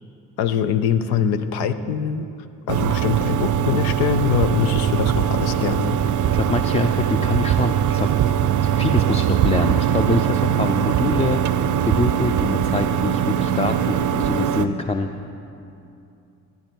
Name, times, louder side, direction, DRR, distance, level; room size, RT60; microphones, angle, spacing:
voice 1, 0.4-2.3 2.7-6.0, left 8 dB, 85° left, 11 dB, 0.6 m, -23 dB
sound 1, 2.7-14.7, right 9 dB, 55° right, 0.5 m, -21 dB
voice 2, 6.3-8.1 8.6-15.3, left 3 dB, 20° left, 6 dB, 0.5 m, -25 dB
14.0 x 10.5 x 4.6 m, 2.7 s
supercardioid pair, 60°, 36 cm